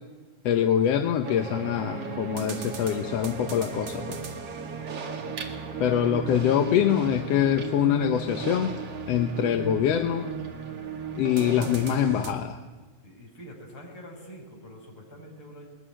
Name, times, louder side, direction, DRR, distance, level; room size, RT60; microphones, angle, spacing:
voice 1, 0.4-4.2 5.8-8.8 9.1-10.3 11.2-12.6, left 9 dB, 65° left, 6 dB, 1.9 m, -24 dB
sound 1, 1.2-12.3, right 6 dB, 55° right, 3.0 m, -36 dB
voice 2, 13.0-15.7, equal, 45° left, 0 dB, 7.2 m, -46 dB
21.0 x 20.5 x 10.0 m, 1.3 s
omnidirectional pair, 3.4 m